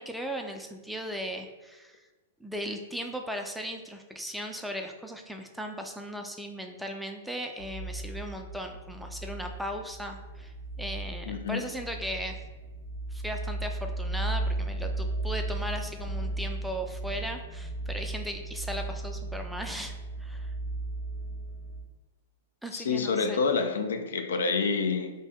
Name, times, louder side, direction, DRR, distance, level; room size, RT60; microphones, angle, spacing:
voice 1, 0.0-2.0 2.4-12.4 13.1-20.5 22.6-23.4, equal, ahead, 0.3 m, -37 dB
sound 1, 7.6-21.8, right 2 dB, 40° left, 0.6 m, -35 dB
voice 2, 11.3-11.6 22.7-25.1, left 4 dB, 80° left, 0.4 m, -28 dB
2.8 x 2.7 x 3.3 m
hypercardioid pair, 125°, 0 cm